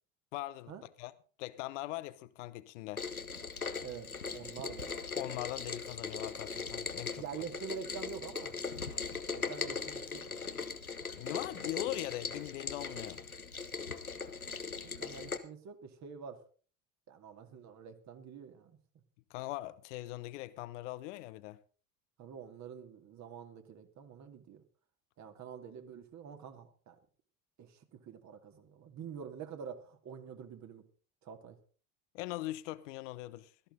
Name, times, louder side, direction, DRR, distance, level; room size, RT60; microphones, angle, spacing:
voice 1, 0.3-0.7 1.0-1.1 1.4-3.0 5.1-7.2 11.2-13.2 19.3-21.6 32.1-33.5, left 17 dB, 60° left, 1.0 m, -41 dB
Rain, 3.0-15.4, left 5 dB, 90° left, 0.9 m, -40 dB
voice 2, 3.8-4.9 7.1-8.5 9.3-10.6 15.0-16.4 17.1-18.8 22.2-24.6 25.2-27.0 27.6-30.8 31.2-31.6, right 7 dB, 40° right, 2.4 m, -47 dB
17.0 x 13.5 x 3.9 m
figure-of-eight pair, 65°, 42 cm